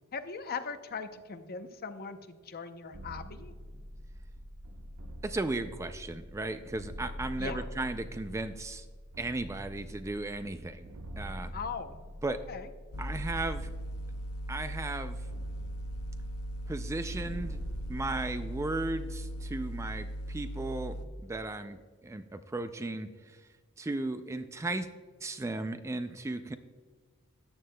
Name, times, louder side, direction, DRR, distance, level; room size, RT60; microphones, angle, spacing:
voice 1, 0.1-3.5 7.4-7.7 11.5-12.0 12.5-12.7, left 5 dB, 45° left, 9 dB, 0.6 m, -39 dB
sound 1, 2.9-20.6, equal, 75° right, 0.7 m, -45 dB
voice 2, 5.2-8.9 9.2-10.9 11.2-11.5 12.2-12.4 13.0-13.7 14.5-15.3 16.7-17.6 17.9-21.0 21.2-23.4 23.8-24.9 25.2-26.6, right 2 dB, 15° right, 10 dB, 0.3 m, -35 dB
sound 2, 12.9-21.1, equal, 85° left, 0.6 m, -39 dB
14.0 x 9.3 x 2.2 m, 1.5 s
head